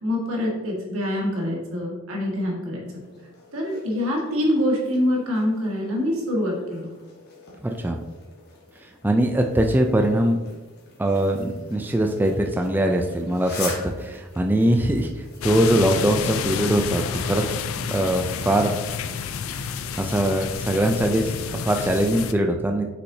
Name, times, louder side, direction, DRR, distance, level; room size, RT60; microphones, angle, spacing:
voice 1, 0.0-2.8 3.5-6.9, left 1 dB, 85° right, -2 dB, 1.7 m, -25 dB
sound 1, 2.9-20.3, left 3 dB, 50° left, 1.4 m, -44 dB
voice 2, 7.6-8.0 8.8-10.4 11.0-15.1 15.4-17.5 17.9-18.8 20.0-22.9, right 1 dB, 10° right, 3 dB, 0.3 m, -22 dB
sound 2, 15.4-22.3, left 6 dB, 80° left, 0.4 m, -29 dB
6.4 x 5.7 x 2.7 m, 1.2 s
head